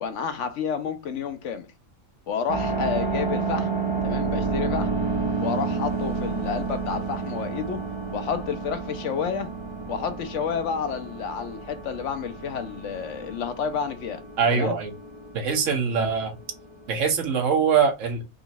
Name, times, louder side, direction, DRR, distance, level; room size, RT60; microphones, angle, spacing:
voice 1, 0.0-1.7 2.3-3.7 4.0-4.9 5.4-7.8 8.1-9.5 9.9-14.2 14.5-14.7, left 6 dB, 60° left, 1.0 m, -30 dB
sound 1, 2.5-17.5, right 4 dB, 25° right, 0.7 m, -31 dB
voice 2, 14.4-14.9 15.3-16.3 16.9-18.2, right 6 dB, 60° right, 1.3 m, -23 dB
3.8 x 2.4 x 4.0 m
omnidirectional pair, 1.5 m